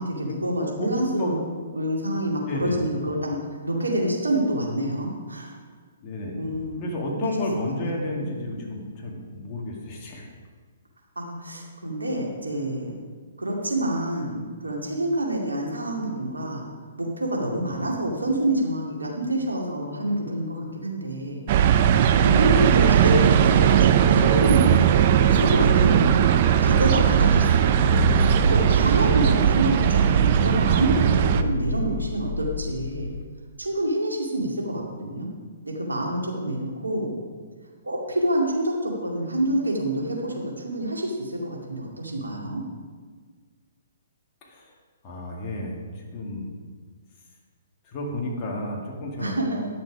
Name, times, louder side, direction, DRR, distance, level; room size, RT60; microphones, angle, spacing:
voice 1, 0.0-1.4 1.7-3.4 3.6-5.6 6.4-7.2 7.8-8.2 11.2-13.0 13.4-16.6 17.0-21.4 22.1-24.7 25.2-33.1 33.6-35.3 35.6-37.1 37.8-42.6 49.2-49.7, right 1 dB, 80° right, -1 dB, 2.3 m, -27 dB
voice 2, 0.6-1.3 2.5-2.9 6.0-6.5 6.8-10.2 44.4-44.7 45.0-46.5 47.8-49.4, left 1 dB, 30° left, -2 dB, 2.3 m, -31 dB
sound 1, 21.5-31.4, right 9 dB, 45° right, 0.5 m, -18 dB
sound 2, 27.8-29.7 31.3-33.3, left 4 dB, 75° left, 0.7 m, -29 dB
10.5 x 6.9 x 5.0 m, 1.5 s
figure-of-eight pair, 125°, 0 cm